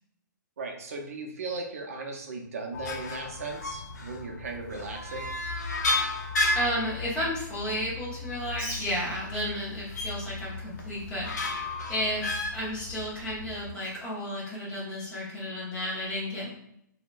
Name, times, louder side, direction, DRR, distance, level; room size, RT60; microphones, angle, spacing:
voice 1, 0.6-5.3, right 3 dB, 45° right, 2 dB, 0.6 m, -37 dB
sound 1, 2.7-13.7, left 3 dB, 55° left, 0.6 m, -34 dB
voice 2, 6.5-11.5 11.9-16.5, equal, 10° left, -7 dB, 0.6 m, -32 dB
Bird, 8.5-15.1, equal, 10° right, 1.2 m, -47 dB
3.6 x 2.1 x 2.4 m, 0.75 s
hypercardioid pair, 175°, 11 cm